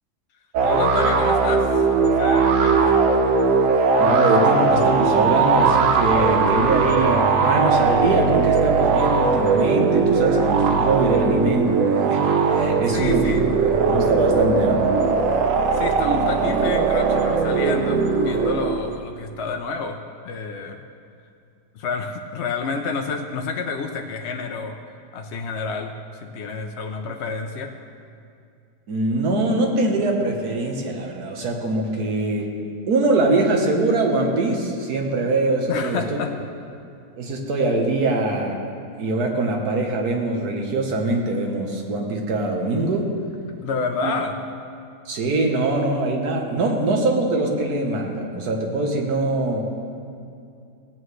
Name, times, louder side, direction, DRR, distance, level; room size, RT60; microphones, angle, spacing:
sound 1, 0.5-19.0, right 4 dB, 65° right, 1.1 m, -19 dB
voice 1, 0.6-3.0 12.9-13.4 15.7-20.8 21.7-24.8 25.1-25.9 26.2-27.7 35.7-36.3 43.6-44.3, left 5 dB, 60° left, 4 dB, 0.8 m, -29 dB
voice 2, 4.0-13.5 13.9-14.8 28.9-32.5 32.9-36.2 37.2-38.6 39.0-43.1 44.0-44.1 45.1-49.9, right 2 dB, 80° right, 2 dB, 1.7 m, -23 dB
17.0 x 8.9 x 3.2 m, 2.4 s
omnidirectional pair, 1.6 m